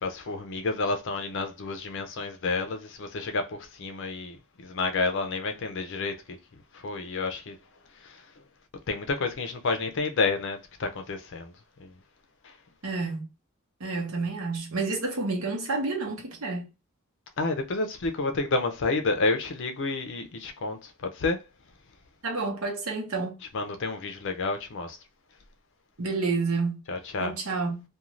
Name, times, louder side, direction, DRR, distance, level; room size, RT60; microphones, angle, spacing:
voice 1, 0.0-6.4 6.7-7.6 8.0-8.2 8.9-11.5 11.8-11.9 12.4-12.5 17.4-21.4 23.5-25.0 26.9-27.3, left 3 dB, 60° left, 0.5 m, -30 dB
voice 2, 12.8-13.3 13.8-16.7 22.2-23.4 26.0-26.8 27.2-27.8, right 3 dB, 75° right, 0.9 m, -29 dB
2.5 x 2.3 x 3.0 m
head